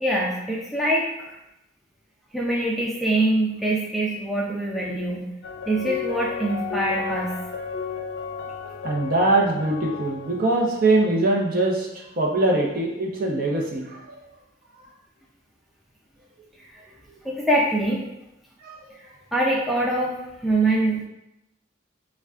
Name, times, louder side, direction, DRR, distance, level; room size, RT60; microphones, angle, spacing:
voice 1, 0.0-1.1 2.3-5.3 5.7-7.4 16.7-16.8 17.2-18.0 19.3-20.2 20.4-21.1, right 1 dB, ahead, -5 dB, 0.4 m, -24 dB
sound 1, 5.4-10.5, left 5 dB, 65° left, 0.5 m, -33 dB
voice 2, 8.8-11.9 12.2-14.2 18.6-18.7, right 2 dB, 45° right, -1 dB, 0.7 m, -22 dB
6.8 x 2.3 x 2.4 m, 0.88 s
head